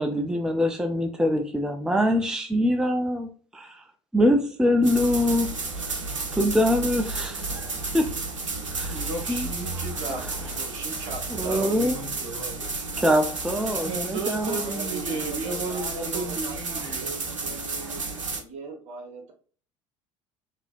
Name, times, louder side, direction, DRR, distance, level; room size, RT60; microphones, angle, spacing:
voice 1, 0.0-3.8 4.1-5.9 6.3-8.1 8.7-9.5 10.1-10.3 11.3-12.0 13.0-14.6, left 1 dB, 5° right, 0.5 m, -24 dB
sound 1, 4.8-18.4, right 3 dB, 85° right, 0.6 m, -32 dB
voice 2, 8.9-12.9 13.7-17.1, right 2 dB, 70° right, 1.0 m, -34 dB
voice 3, 14.4-18.0 18.4-19.3, right 3 dB, 50° right, 1.4 m, -40 dB
3.8 x 2.8 x 2.5 m
figure-of-eight pair, 60°, 16 cm